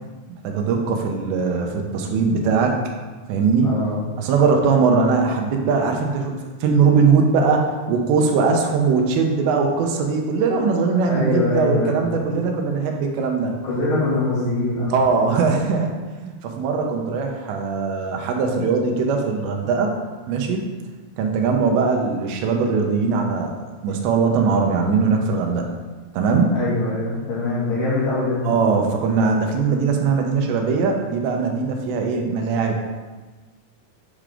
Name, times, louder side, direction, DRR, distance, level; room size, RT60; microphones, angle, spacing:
voice 1, 0.4-2.8 3.3-3.7 4.2-13.5 14.9-19.9 20.3-20.7 21.2-23.6 23.8-25.8 26.1-26.6 28.5-32.8, right 5 dB, 90° right, 2 dB, 3.0 m, -20 dB
voice 2, 3.5-4.0 11.0-12.3 13.6-14.9 26.5-28.5, left 2 dB, 70° left, -9 dB, 4.1 m, -23 dB
8.6 x 5.0 x 3.7 m, 1.3 s
omnidirectional pair, 5.0 m